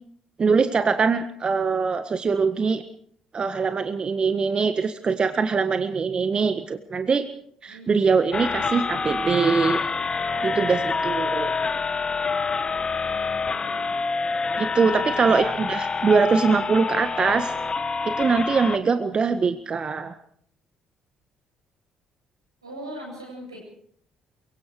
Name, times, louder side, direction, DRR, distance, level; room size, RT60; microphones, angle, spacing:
voice 1, 0.4-2.8 3.3-7.3 7.6-9.8 10.4-11.5 14.6-17.5 18.0-20.1, right 5 dB, 35° right, 9 dB, 1.6 m, -22 dB
sound 1, 8.3-18.8, left 4 dB, 35° left, 1.6 m, -27 dB
voice 2, 13.0-13.9 22.6-23.6, right 1 dB, 90° right, -1 dB, 8.0 m, -40 dB
23.5 x 23.0 x 4.8 m, 0.63 s
figure-of-eight pair, 45°, 3 cm